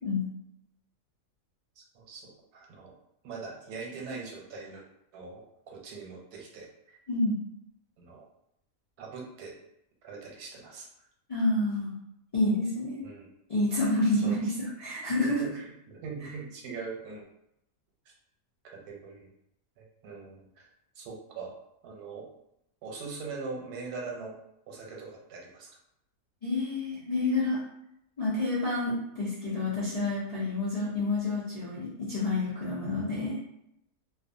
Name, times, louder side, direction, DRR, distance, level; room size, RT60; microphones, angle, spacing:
voice 1, 1.8-2.9 3.2-4.8 5.1-7.0 8.0-8.2 9.0-9.5 10.0-10.9 13.0-13.3 14.2-14.4 15.2-17.2 18.7-19.3 19.8-20.6 21.0-21.6 21.8-22.3 22.8-24.3 24.7-25.8, right 4 dB, 85° right, -1 dB, 1.2 m, -42 dB
voice 2, 7.1-7.4 11.3-12.0 12.3-13.0 13.5-14.5 14.8-15.4 26.4-27.6 28.2-33.4, left 2 dB, 85° left, -9 dB, 0.3 m, -28 dB
2.5 x 2.4 x 2.5 m, 0.79 s
omnidirectional pair, 1.6 m